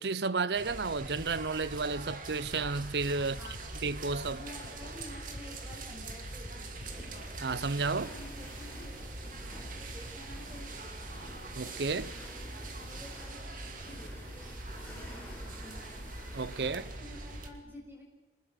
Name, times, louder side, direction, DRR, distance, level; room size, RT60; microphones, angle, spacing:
voice 1, 0.0-3.4 3.8-4.4 7.4-8.1 11.5-12.1 16.3-16.8, right 4 dB, 70° right, 0.7 m, -32 dB
sound 1, 0.5-17.5, right 2 dB, 50° right, 2.4 m, -43 dB
sound 2, 0.9-7.2, left 2 dB, 75° left, 0.9 m, -53 dB
voice 2, 3.2-3.6 4.3-7.0 7.9-11.2 11.7-16.1 16.5-18.0, left 1 dB, 10° right, 6.1 m, -51 dB
sound 3, 6.8-16.8, left 1 dB, 10° left, 5.1 m, -52 dB
25.5 x 20.5 x 6.6 m
head